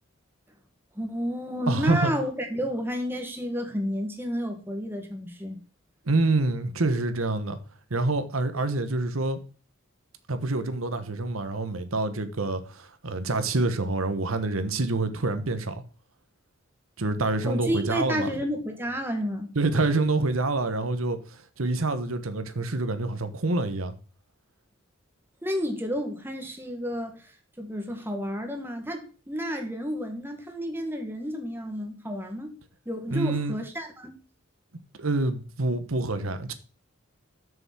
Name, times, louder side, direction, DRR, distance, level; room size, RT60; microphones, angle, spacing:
voice 1, 1.0-5.6 17.4-19.5 25.4-32.5 32.9-34.2, equal, 10° right, 1.8 m, -31 dB
voice 2, 1.7-2.1 6.1-7.6 7.9-9.4 10.3-15.8 17.0-18.3 19.5-23.9 33.1-33.5 35.0-36.5, right 2 dB, 85° right, 1.2 m, -27 dB
7.1 x 6.7 x 6.1 m
head